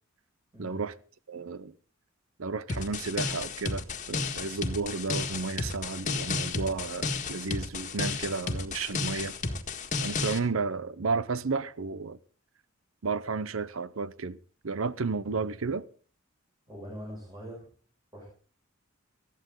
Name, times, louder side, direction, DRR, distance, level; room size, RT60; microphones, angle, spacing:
voice 1, 0.6-0.9 1.3-1.7 2.4-9.4 10.0-12.2 13.0-14.4 14.6-15.8, right 4 dB, 70° right, 0.7 m, -32 dB
sound 1, 2.7-10.4, left 4 dB, 35° left, 1.8 m, -32 dB
voice 2, 16.7-17.7 18.1-18.3, equal, 20° right, 6.6 m, -42 dB
20.0 x 13.5 x 3.8 m
head